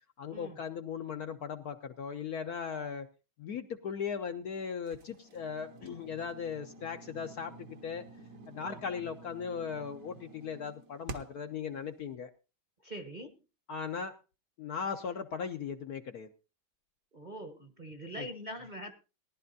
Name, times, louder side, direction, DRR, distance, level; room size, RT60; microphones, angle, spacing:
voice 1, 0.2-3.1 3.4-8.0 8.5-12.3 13.7-14.2 14.6-16.3 18.2-18.3, left 6 dB, 60° left, 6 dB, 1.1 m, -38 dB
sound 1, 4.9-11.5, right 3 dB, 50° right, 1.3 m, -49 dB
voice 2, 12.8-13.4 17.1-18.9, right 1 dB, 30° right, 5 dB, 1.0 m, -43 dB
19.0 x 11.5 x 2.6 m, 0.30 s
omnidirectional pair, 2.1 m